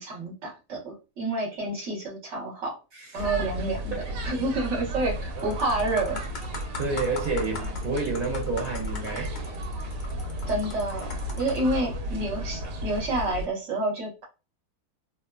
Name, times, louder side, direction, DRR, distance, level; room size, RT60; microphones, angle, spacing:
voice 1, 0.0-2.8 3.1-3.9 4.2-6.2 10.4-14.2, right 2 dB, 50° right, 1.2 m, -29 dB
voice 2, 2.9-3.2 5.4-5.5 6.8-9.3, right 3 dB, 70° right, 1.1 m, -30 dB
sound 1, 3.2-13.5, equal, 90° right, 1.2 m, -34 dB
sound 2, 5.0-5.1 5.4-11.8 12.5-12.7, left 3 dB, 70° left, 0.4 m, -41 dB
2.8 x 2.1 x 2.3 m
omnidirectional pair, 1.8 m